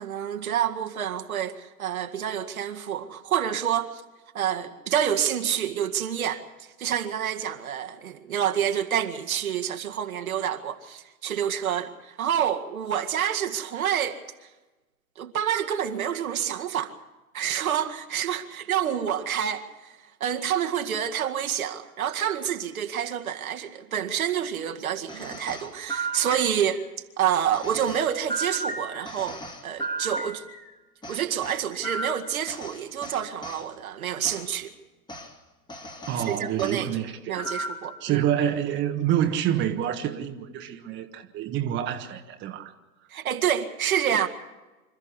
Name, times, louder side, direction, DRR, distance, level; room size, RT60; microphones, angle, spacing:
voice 1, 0.0-4.0 4.3-6.4 6.8-14.2 15.2-16.9 17.3-26.8 27.2-30.4 31.1-34.7 36.2-38.2 43.1-44.3, right 9 dB, 65° right, 2.1 m, -28 dB
sound 1, 25.1-26.9 27.5-30.7 31.0-33.6 34.2-34.5 35.1-35.3 35.7-36.8 37.4-38.0, right 2 dB, 10° left, 2.3 m, -35 dB
voice 2, 36.1-37.5 38.0-42.7, right 10 dB, 25° right, 1.5 m, -27 dB
27.0 x 13.5 x 8.1 m
figure-of-eight pair, 115°, 45 cm